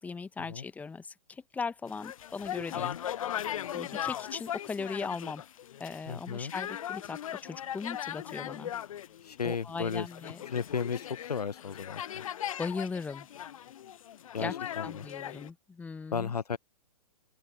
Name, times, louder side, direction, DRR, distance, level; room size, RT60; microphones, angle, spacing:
voice 1, 0.0-3.0 3.7-5.4 5.8-8.7 9.4-10.4 12.6-13.3 14.4-14.5 14.8-16.3, left 5 dB, 10° left, 1.1 m, -38 dB
sound 1, 1.9-15.5, left 10 dB, 60° left, 0.4 m, -39 dB
voice 2, 6.1-6.5 9.2-10.1 10.5-12.2 14.3-15.1 16.1-16.6, left 6 dB, 75° left, 1.0 m, -34 dB
open air
figure-of-eight pair, 120°, 20 cm